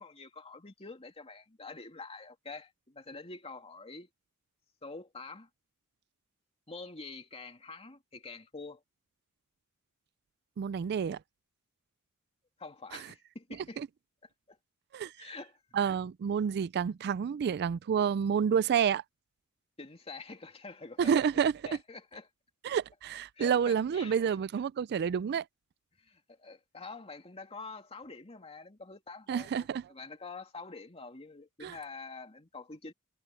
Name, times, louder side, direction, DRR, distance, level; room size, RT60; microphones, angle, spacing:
voice 1, 0.0-4.1 4.8-5.5 6.7-8.8 12.6-13.8 14.5-14.6 15.2-15.6 19.8-22.3 23.3-24.4 26.0-32.9, left 3 dB, 25° left, 2.6 m, -46 dB
voice 2, 10.6-11.2 12.9-13.0 13.8-13.9 14.9-15.3 15.7-19.0 21.0-21.5 22.6-25.4 29.3-29.8 31.6-31.7, right 7 dB, 50° right, 0.3 m, -29 dB
head